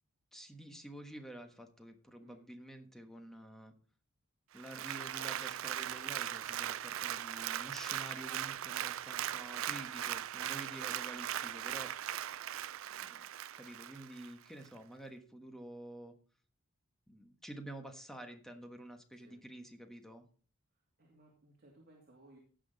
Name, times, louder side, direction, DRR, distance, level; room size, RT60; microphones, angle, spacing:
voice 1, 0.3-3.7 4.5-11.9 12.9-16.1 17.1-20.3, right 1 dB, ahead, 5 dB, 1.3 m, -49 dB
Applause, 4.6-14.3 14.8-14.9, right 11 dB, 65° right, 0.4 m, -39 dB
voice 2, 21.0-22.4, right 1 dB, 45° right, -2 dB, 2.6 m, -61 dB
16.5 x 6.1 x 4.1 m, 0.42 s
head